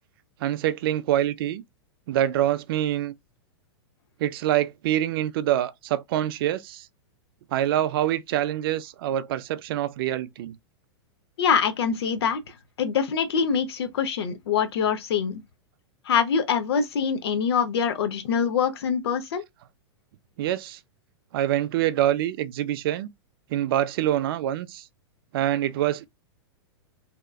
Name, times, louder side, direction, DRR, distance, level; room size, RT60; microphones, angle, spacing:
voice 1, 0.4-1.6 2.1-3.1 4.2-6.9 7.5-10.6 20.4-20.8 21.3-23.1 23.5-24.8 25.3-26.1, right 12 dB, 55° right, 0.4 m, -25 dB
voice 2, 11.4-15.4 16.1-19.4, left 7 dB, 70° left, 0.6 m, -24 dB
2.8 x 2.2 x 2.2 m
hypercardioid pair, 105°, 14 cm